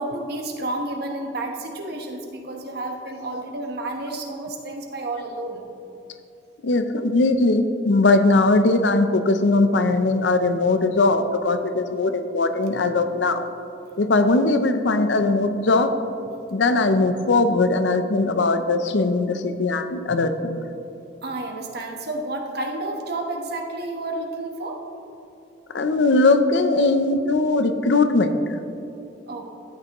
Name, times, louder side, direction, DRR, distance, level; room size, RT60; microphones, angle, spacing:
voice 1, 0.0-5.6 21.2-24.8 29.3-29.5, right 2 dB, 60° right, 2 dB, 1.1 m, -31 dB
voice 2, 6.6-13.4 14.0-15.9 16.5-20.5 25.7-28.4, left 2 dB, 75° left, 9 dB, 0.6 m, -20 dB
13.0 x 8.8 x 3.0 m, 2.8 s
head